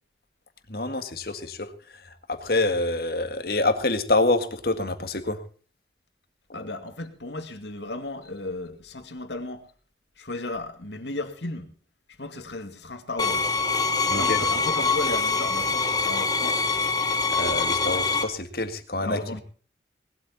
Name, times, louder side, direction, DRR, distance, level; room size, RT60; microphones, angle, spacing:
voice 1, 0.7-1.7 2.3-5.4 14.1-14.4 17.4-19.4, left 2 dB, 55° left, 1.9 m, -26 dB
voice 2, 6.5-9.7 10.2-11.7 12.2-13.5 14.0-16.6 18.9-19.4, left 2 dB, 80° left, 2.3 m, -35 dB
sound 1, 13.2-18.2, left 4 dB, 20° left, 1.3 m, -24 dB
19.5 x 12.5 x 4.2 m
head